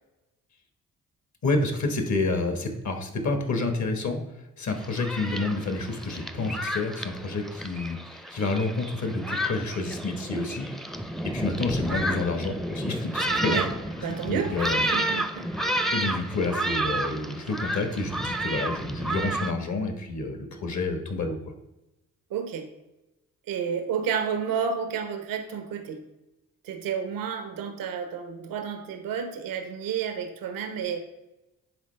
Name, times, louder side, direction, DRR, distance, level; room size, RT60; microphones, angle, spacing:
voice 1, 1.4-4.2 4.6-10.6 10.9-13.6 14.0-14.9 15.9-21.5, left 3 dB, 55° left, 5 dB, 1.5 m, -29 dB
Thunderstorm, 4.7-19.5, right 1 dB, ahead, 0.6 m, -31 dB
voice 2, 14.0-15.4 22.3-22.7 23.5-26.0 26.6-31.0, right 7 dB, 85° right, 6 dB, 0.9 m, -31 dB
10.0 x 3.8 x 3.3 m, 0.98 s
supercardioid pair, 60°, 33 cm